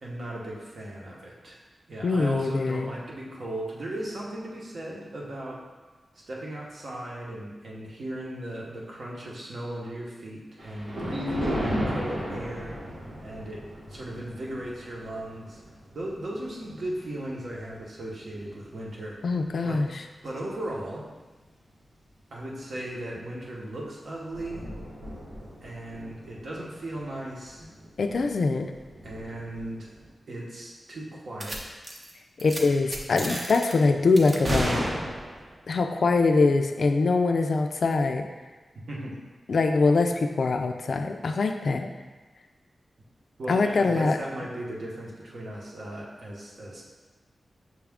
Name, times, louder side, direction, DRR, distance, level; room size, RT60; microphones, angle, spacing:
voice 1, 0.0-1.6 1.9-5.6 6.3-12.8 13.2-13.6 13.9-15.6 15.9-19.2 19.6-19.8 20.2-21.0 22.3-24.7 25.6-27.6 29.0-29.9 30.3-31.7 38.9-39.1 43.4-46.8, right 1 dB, 65° right, -3 dB, 0.9 m, -37 dB
voice 2, 2.0-2.9 19.2-19.9 28.0-28.7 32.4-34.9 35.7-38.3 39.5-41.9 43.5-44.2, left 3 dB, 70° left, 5 dB, 0.3 m, -23 dB
Thunder, 10.6-19.1 19.6-19.9 20.6-20.7 21.0-21.1 23.3-23.5 23.8-23.9 24.1-30.1, equal, 90° right, 1.2 m, -37 dB
sound 1, 31.4-31.6 31.8-32.1 32.4-32.6 32.9-33.7 34.2-35.5, right 1 dB, 35° right, 0.6 m, -30 dB
6.0 x 2.4 x 3.5 m, 1.3 s
wide cardioid pair, 120°, 0 cm